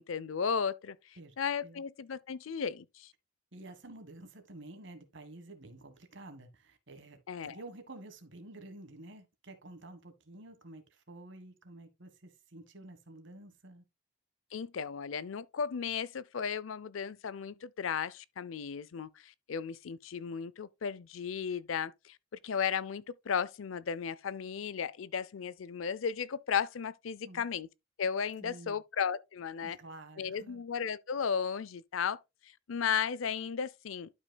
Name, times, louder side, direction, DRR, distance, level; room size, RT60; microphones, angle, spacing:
voice 1, 0.0-3.1 7.3-7.6 14.5-22.2 22.4-27.7 28.0-29.8 30.2-34.1, left 7 dB, 85° left, 0.5 m, -35 dB
voice 2, 3.5-13.8 27.2-27.4 28.4-28.8 29.6-30.6, right 2 dB, 65° right, 1.5 m, -50 dB
12.0 x 5.3 x 2.2 m
head